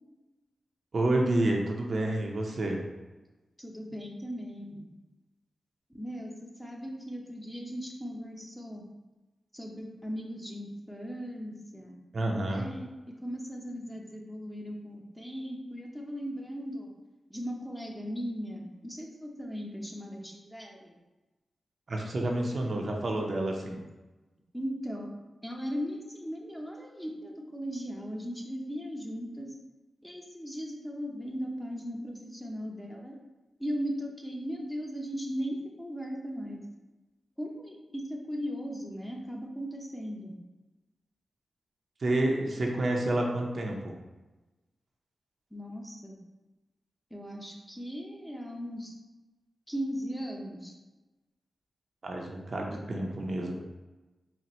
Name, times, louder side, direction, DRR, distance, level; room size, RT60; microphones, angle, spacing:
voice 1, 0.9-2.8 12.1-12.6 21.9-23.8 42.0-44.0 52.0-53.6, right 1 dB, 55° right, 0 dB, 0.6 m, -29 dB
voice 2, 3.6-4.8 5.9-6.3 6.6-8.8 9.5-12.0 12.4-12.9 13.2-16.9 17.3-20.9 24.5-25.1 25.4-29.5 30.0-33.2 33.6-36.6 37.4-40.4 45.5-46.2 47.1-48.9 49.7-50.7, equal, 5° left, -1 dB, 0.7 m, -38 dB
4.1 x 2.1 x 4.2 m, 1.1 s
wide cardioid pair, 85°, 0 cm